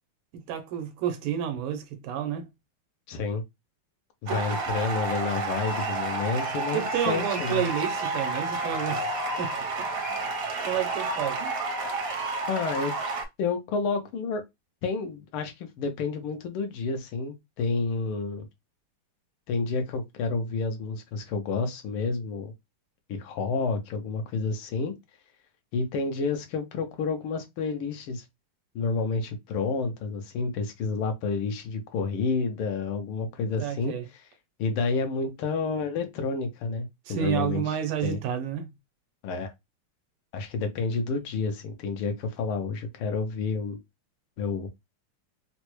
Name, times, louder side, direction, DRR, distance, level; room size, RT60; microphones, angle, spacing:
voice 1, 0.3-2.5 4.3-4.4 6.7-9.9 10.6-11.6 33.6-34.0 37.1-38.7, right 9 dB, 85° right, 1.6 m, -30 dB
voice 2, 3.1-3.4 4.2-7.7 12.5-13.0 13.4-14.4 14.8-18.5 19.5-22.5 23.1-24.9 25.7-28.2 28.7-33.9 34.6-38.2 39.2-39.5 40.3-43.8 44.4-44.7, left 4 dB, 85° left, 1.6 m, -30 dB
sound 1, 4.3-13.3, right 3 dB, 65° right, 0.9 m, -30 dB
4.3 x 2.0 x 3.0 m
omnidirectional pair, 2.4 m